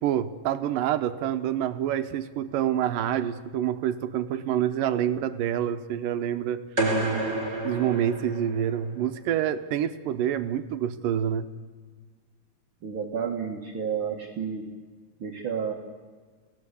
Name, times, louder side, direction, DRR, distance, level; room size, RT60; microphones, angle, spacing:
voice 1, 0.0-6.6 7.6-11.5, right 10 dB, 80° right, 9 dB, 2.6 m, -27 dB
sound 1, 6.8-8.9, right 2 dB, 20° right, 4.8 m, -29 dB
voice 2, 12.8-14.7 15.2-15.7, right 7 dB, 45° right, 1 dB, 2.1 m, -31 dB
29.5 x 17.5 x 8.4 m, 1.5 s
omnidirectional pair, 4.0 m